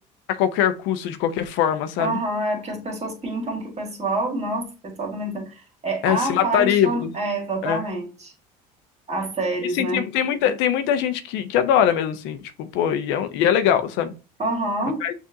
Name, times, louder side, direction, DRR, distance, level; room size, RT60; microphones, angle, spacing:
voice 1, 0.3-2.2 6.0-7.1 7.6-7.8 9.7-14.1 15.0-15.1, left 9 dB, 70° left, 0.6 m, -22 dB
voice 2, 2.0-8.3 9.1-10.1 14.4-15.0, right 2 dB, 35° right, 1.8 m, -27 dB
6.3 x 2.6 x 2.7 m
hypercardioid pair, 70°, 20 cm